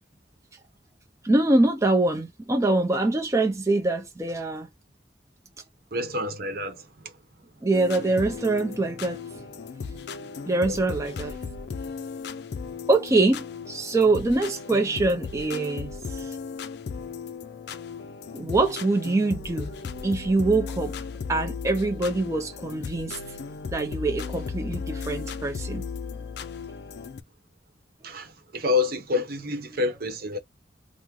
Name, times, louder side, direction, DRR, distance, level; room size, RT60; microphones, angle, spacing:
voice 1, 1.2-4.7 7.6-9.5 10.2-11.4 12.9-16.4 18.3-19.7 20.0-21.0 21.3-23.2 23.7-25.8 29.7-29.8, right 2 dB, 15° right, 0.4 m, -24 dB
voice 2, 5.9-7.1 10.7-10.8 28.0-30.4, left 3 dB, 55° right, 0.8 m, -28 dB
sound 1, 7.7-27.2, left 5 dB, 60° left, 0.4 m, -36 dB
3.6 x 2.0 x 2.9 m
head